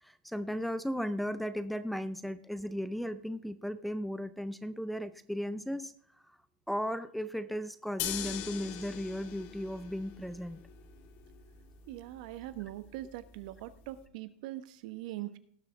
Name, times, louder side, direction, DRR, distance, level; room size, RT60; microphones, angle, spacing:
voice 1, 0.0-5.9 6.2-6.4 6.7-10.6, equal, ahead, 13 dB, 0.5 m, -36 dB
sound 1, 8.0-14.0, left 10 dB, 45° left, 1.6 m, -43 dB
voice 2, 11.9-15.4, right 15 dB, 55° right, 13 dB, 1.1 m, -42 dB
18.0 x 6.8 x 3.4 m, 0.63 s
hypercardioid pair, 130°, 5 cm